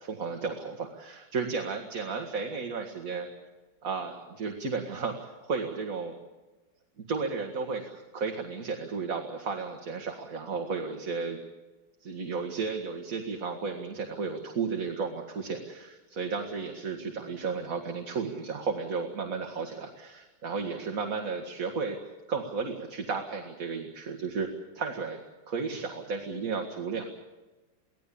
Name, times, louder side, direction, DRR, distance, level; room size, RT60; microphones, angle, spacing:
voice 1, 0.0-3.3 3.8-5.2 5.4-6.1 7.1-11.4 12.0-22.0 22.3-25.2 25.5-27.1, right 5 dB, 45° right, 3 dB, 2.1 m, -33 dB
24.5 x 17.0 x 8.5 m, 1.2 s
omnidirectional pair, 2.1 m